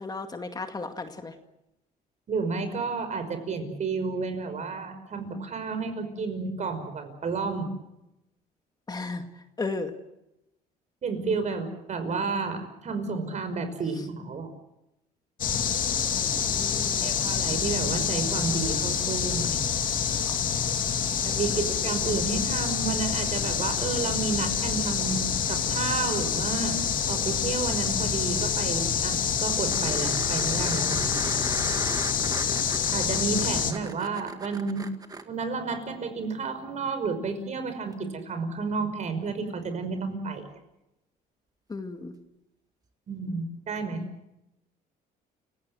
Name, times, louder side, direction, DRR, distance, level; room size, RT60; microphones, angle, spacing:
voice 1, 0.0-1.3 8.9-9.2 9.6-9.9 16.2-17.1 20.3-20.4 21.0-21.1 41.7-42.1, left 3 dB, 25° left, 6 dB, 2.1 m, -35 dB
voice 2, 2.3-7.7 11.0-14.5 17.0-19.7 21.2-26.8 27.1-31.2 32.9-34.9 35.3-40.5 43.1-44.0, right 4 dB, 45° right, 9 dB, 5.6 m, -31 dB
sound 1, 15.4-33.7, left 7 dB, 50° left, 2.9 m, -27 dB
sound 2, 29.7-35.2 37.9-38.0, right 3 dB, 20° right, 2.1 m, -38 dB
29.5 x 17.5 x 8.0 m, 0.89 s
cardioid pair, 110°, 17 cm